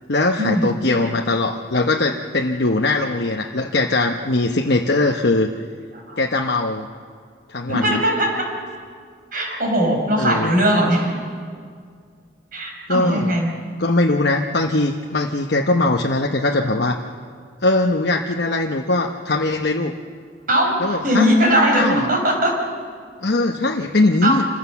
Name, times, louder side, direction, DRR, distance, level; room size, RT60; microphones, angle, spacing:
voice 1, 0.1-5.5 6.2-6.9 7.5-8.0 10.2-10.6 12.9-13.4 13.8-17.0 17.6-19.9 20.8-21.3 21.7-22.1 23.2-24.5, left 2 dB, 60° left, 2 dB, 1.0 m, -20 dB
voice 2, 7.7-8.5 9.3-11.1 12.5-13.6 20.5-22.5 24.2-24.4, equal, 50° right, 1 dB, 4.9 m, -19 dB
27.5 x 15.5 x 7.1 m, 2.1 s
head